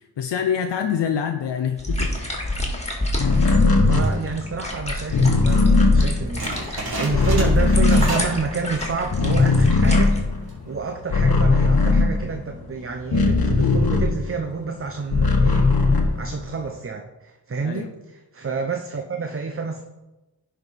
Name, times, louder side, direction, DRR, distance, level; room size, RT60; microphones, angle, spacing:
voice 1, 0.0-2.1 17.6-17.9, left 8 dB, 80° left, 6 dB, 0.6 m, -25 dB
sound 1, 1.8-10.2, left 1 dB, 15° left, 1.9 m, -30 dB
sound 2, 3.2-8.8 9.1-14.5 14.9-16.7, left 3 dB, 55° left, 1.2 m, -19 dB
voice 2, 3.8-10.1 10.7-15.7 16.1-19.8, right 5 dB, 30° right, 5 dB, 0.7 m, -29 dB
sound 3, 6.4-8.4 8.7-9.1 9.5-9.6 10.3-10.7, right 2 dB, 60° right, 2.3 m, -31 dB
10.5 x 4.5 x 4.1 m, 1.1 s
cardioid pair, 50°, 42 cm